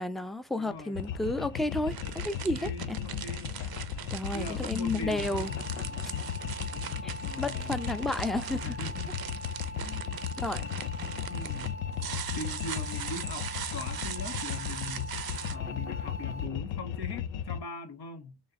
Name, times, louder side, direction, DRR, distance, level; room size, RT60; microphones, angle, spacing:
voice 1, 0.0-3.0 4.1-5.5 7.0-7.1 7.4-8.8 10.4-10.6, left 1 dB, ahead, 0.5 m, -32 dB
voice 2, 0.6-1.0 2.4-3.5 4.3-6.1 7.2-7.9 8.6-9.2 9.8-10.2 11.3-11.8 12.3-15.2 15.5-18.4, left 3 dB, 55° left, 1.0 m, -41 dB
sound 1, 0.7-0.8 1.6-15.6, right 9 dB, 50° right, 0.6 m, -41 dB
sound 2, 0.9-17.6, left 9 dB, 75° left, 0.7 m, -36 dB
sound 3, 5.0-16.5, left 1 dB, 30° left, 1.1 m, -44 dB
3.1 x 2.8 x 3.6 m
supercardioid pair, 50°, 46 cm